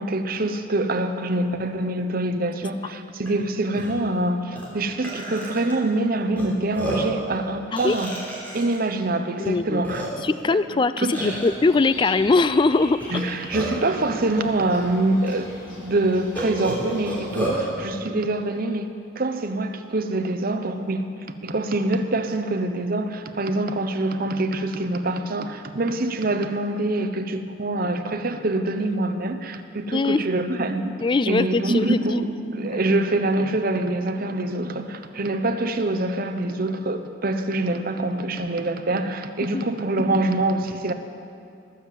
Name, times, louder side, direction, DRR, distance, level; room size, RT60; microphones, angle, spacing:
voice 1, 0.0-8.2 8.5-10.1 10.5-10.6 11.0-11.4 13.1-18.9 19.2-31.0 31.3-40.9, right 2 dB, 50° right, 8 dB, 0.8 m, -25 dB
Burping eructation, 3.3-3.4 3.7-3.9 4.6-4.7 5.0-5.7 6.4-6.5 6.7-7.2 7.8-8.8 9.4-9.5 9.8-10.4 11.1-11.5 13.0-13.9 14.7-14.8 15.3-15.4 16.3-17.6, right 1 dB, 10° left, 3.3 m, -30 dB
voice 2, 9.4-9.8 10.2-13.0 29.9-30.2 31.0-32.2 39.5-39.6, left 3 dB, 25° left, 14 dB, 0.3 m, -21 dB
sound 1, 11.1-17.7, left 1 dB, 80° left, 4.1 m, -42 dB
20.5 x 7.3 x 7.6 m, 2.6 s
head